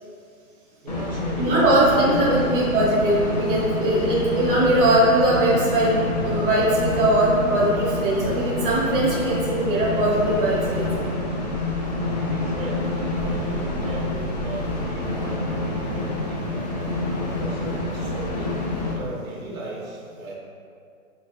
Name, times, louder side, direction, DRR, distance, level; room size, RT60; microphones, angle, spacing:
voice 1, 0.8-2.4 12.3-16.9 17.3-20.3, right 2 dB, 70° right, -3 dB, 1.2 m, -37 dB
sound 1, 0.9-18.9, left 2 dB, 30° left, 0.5 m, -27 dB
voice 2, 1.4-6.0 6.2-11.0 17.6-17.7, right 1 dB, 40° right, -6 dB, 0.8 m, -20 dB
4.4 x 4.1 x 2.4 m, 2.4 s
hypercardioid pair, 160°, 43 cm